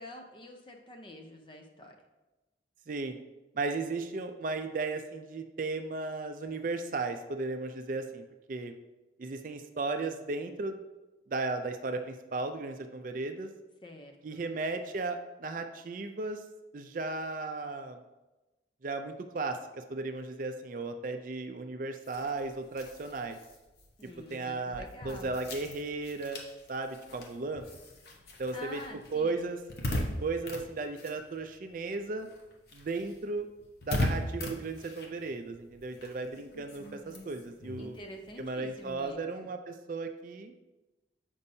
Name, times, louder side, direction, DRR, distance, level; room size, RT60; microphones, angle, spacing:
voice 1, 0.0-1.9 13.8-14.4 24.0-25.4 28.5-29.4 37.8-39.2, left 1 dB, 25° left, 3 dB, 0.6 m, -47 dB
voice 2, 2.9-3.2 3.5-8.7 9.2-10.8 11.3-13.5 14.2-16.4 16.7-18.0 18.8-23.4 24.3-26.4 26.7-27.6 28.4-28.8 29.1-29.6 30.2-32.3 32.7-33.5 33.9-38.0 38.4-40.5, right 3 dB, 45° right, 7 dB, 0.4 m, -35 dB
sound 1, 22.0-31.9 32.2-39.1, left 1 dB, 60° left, 0.9 m, -40 dB
7.0 x 5.3 x 2.7 m, 1.1 s
head